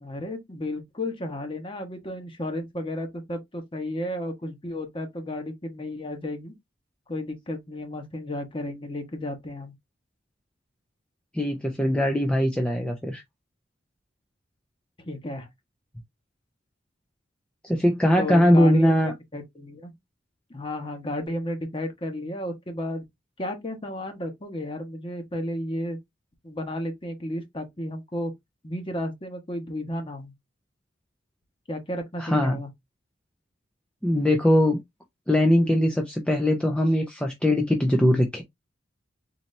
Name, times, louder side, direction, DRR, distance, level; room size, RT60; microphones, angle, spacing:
voice 1, 0.0-6.5 7.1-9.7 15.0-15.5 18.2-19.9 20.5-23.0 23.4-26.0 26.4-28.3 28.6-30.3 31.7-32.7, left 1 dB, 30° left, 1.1 m, -33 dB
voice 2, 11.3-13.2 17.6-19.1 32.2-32.6 34.0-34.8 35.3-38.4, equal, 5° left, 0.5 m, -21 dB
4.0 x 2.8 x 3.2 m
head